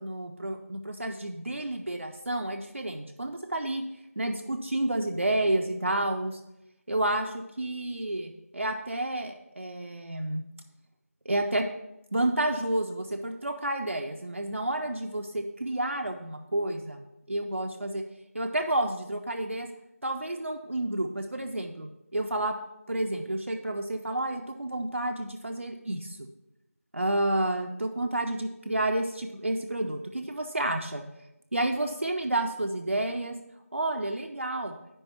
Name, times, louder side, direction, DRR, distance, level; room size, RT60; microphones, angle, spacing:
voice 1, 0.0-3.8 4.2-6.4 6.9-10.4 11.3-11.7 12.1-18.0 18.3-19.7 20.0-22.5 22.9-26.3 26.9-31.0 31.5-33.4 33.7-34.7, right 1 dB, 55° right, 3 dB, 0.6 m, -30 dB
9.9 x 3.6 x 5.7 m, 0.88 s
figure-of-eight pair, 175°, 8 cm